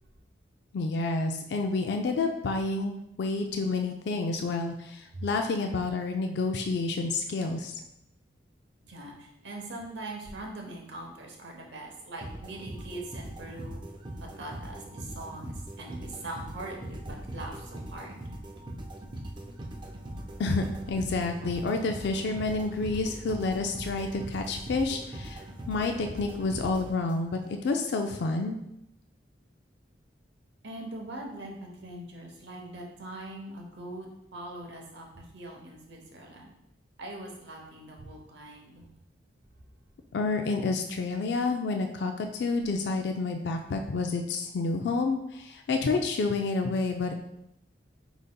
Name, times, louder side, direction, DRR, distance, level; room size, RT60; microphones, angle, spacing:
voice 1, 0.7-7.7 20.4-27.4 27.6-28.6 40.1-47.1, left 3 dB, 65° left, 4 dB, 0.3 m, -29 dB
voice 2, 8.8-13.8 14.4-18.2 30.6-36.5 37.0-38.9, right 1 dB, 70° right, 0 dB, 0.9 m, -42 dB
sound 1, 12.2-27.5, right 1 dB, 25° right, 0.4 m, -41 dB
5.0 x 4.0 x 2.2 m, 0.80 s
head